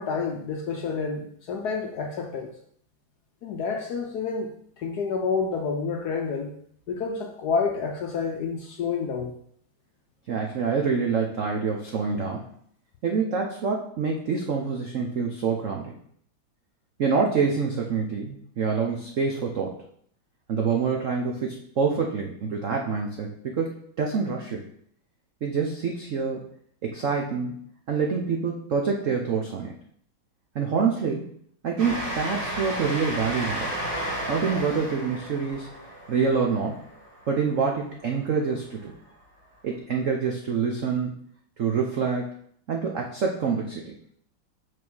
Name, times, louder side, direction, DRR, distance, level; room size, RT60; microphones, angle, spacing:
voice 1, 0.0-2.5 3.4-4.5 4.8-6.5 6.9-9.4, left 5 dB, 65° left, 3 dB, 1.0 m, -29 dB
voice 2, 10.3-12.5 13.0-15.9 17.0-19.8 20.5-24.7 25.4-26.5 26.8-29.7 30.5-31.3 31.6-33.8 34.3-35.7 36.1-36.8 37.3-38.9 39.6-41.2 41.6-42.4 42.7-43.9, right 5 dB, 70° right, 1 dB, 0.7 m, -26 dB
Train, 31.8-37.9, equal, 50° right, 2.0 m, -33 dB
6.3 x 3.6 x 6.1 m, 0.64 s
omnidirectional pair, 2.3 m